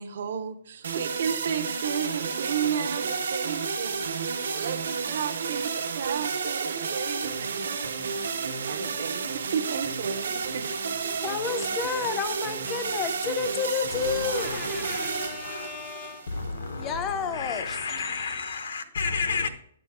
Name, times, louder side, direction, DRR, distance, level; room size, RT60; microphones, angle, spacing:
voice 1, 0.0-7.9 8.3-10.7, right 7 dB, 45° right, 0.6 m, -33 dB
sound 1, 0.8-16.9, right 5 dB, 70° right, 1.1 m, -31 dB
voice 2, 11.1-16.4 16.8-18.7, left 6 dB, 15° left, 0.4 m, -32 dB
voice 3, 14.3-15.8 16.3-19.5, left 4 dB, 65° left, 0.8 m, -32 dB
8.7 x 6.1 x 3.5 m
hypercardioid pair, 180°, 0 cm